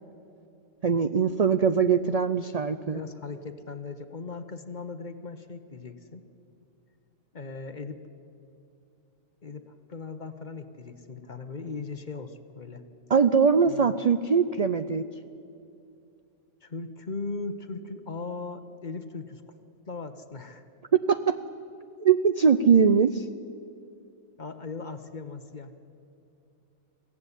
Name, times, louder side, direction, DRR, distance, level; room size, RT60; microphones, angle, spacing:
voice 1, 0.8-3.0 13.1-15.0 21.1-21.4 22.0-23.3, right 6 dB, 55° right, 11 dB, 0.4 m, -22 dB
voice 2, 2.9-6.2 7.3-8.0 9.4-12.8 13.7-14.0 16.6-19.4 19.9-20.6 24.4-25.7, left 4 dB, 35° left, 9 dB, 1.1 m, -38 dB
22.5 x 16.0 x 10.0 m, 2.6 s
omnidirectional pair, 1.4 m